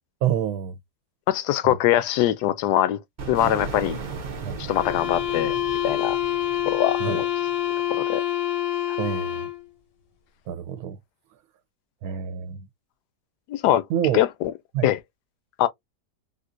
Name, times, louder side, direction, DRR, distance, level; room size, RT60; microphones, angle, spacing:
voice 1, 0.2-0.8 1.6-1.8 4.4-4.6 7.0-7.2 9.0-9.5 10.5-11.0 12.0-12.7 13.9-14.2 14.7-14.9, right 10 dB, 70° right, 1.0 m, -27 dB
voice 2, 1.3-3.0 3.3-4.0 4.6-5.5 5.8-6.2 6.6-7.3 7.9-8.2 13.5-13.8 14.1-14.5 14.8-15.0 15.6-15.7, left 12 dB, 80° left, 1.2 m, -22 dB
sound 1, 3.2-7.8, right 5 dB, 50° right, 0.5 m, -36 dB
sound 2, 4.7-9.6, left 13 dB, 50° left, 0.7 m, -26 dB
3.7 x 2.5 x 2.5 m
omnidirectional pair, 1.8 m